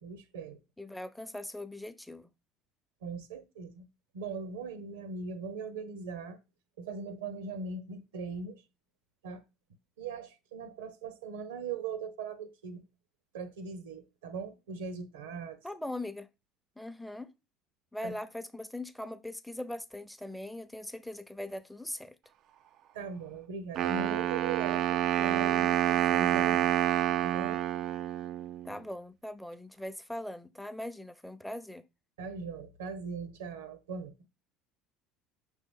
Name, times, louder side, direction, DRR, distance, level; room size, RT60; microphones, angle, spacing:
voice 1, 0.0-0.6 3.0-3.8 4.1-6.4 6.8-8.6 9.2-9.4 10.0-12.8 13.3-15.6 18.0-18.1 22.9-26.7 27.2-27.6 32.2-34.1, right 5 dB, 75° right, 0.8 m, -39 dB
voice 2, 0.8-2.3 15.6-16.3 16.8-17.3 17.9-22.1 28.6-31.8, left 1 dB, 5° left, 0.7 m, -40 dB
Wind instrument woodwind instrument, 23.8-28.7, right 11 dB, 55° right, 0.4 m, -28 dB
6.3 x 4.5 x 3.6 m
hypercardioid pair, 65°, 0 cm